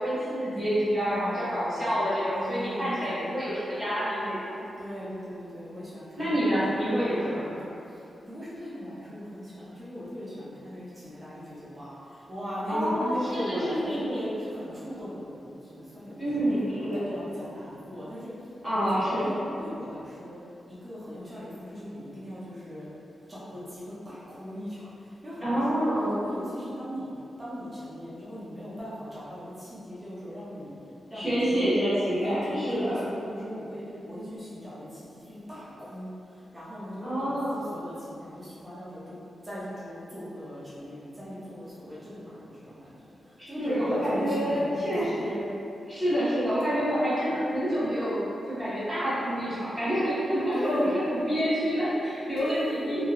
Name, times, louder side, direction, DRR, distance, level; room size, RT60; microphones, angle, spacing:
voice 1, 0.0-4.6 6.2-7.4 12.7-14.3 16.2-17.2 18.6-19.3 25.4-26.1 31.1-33.0 37.0-37.6 43.6-45.6 45.9-53.0, equal, 5° right, -15 dB, 1.3 m, -27 dB
voice 2, 1.0-2.0 2.3-3.3 4.8-20.4 20.7-22.9 23.3-25.9 26.2-27.1 27.4-30.8 31.1-31.8 32.1-39.2 39.4-45.2 50.5-50.9 52.4-53.0, equal, 25° right, -10 dB, 0.6 m, -39 dB
2.9 x 2.7 x 2.3 m, 2.7 s
wide cardioid pair, 160°, 0 cm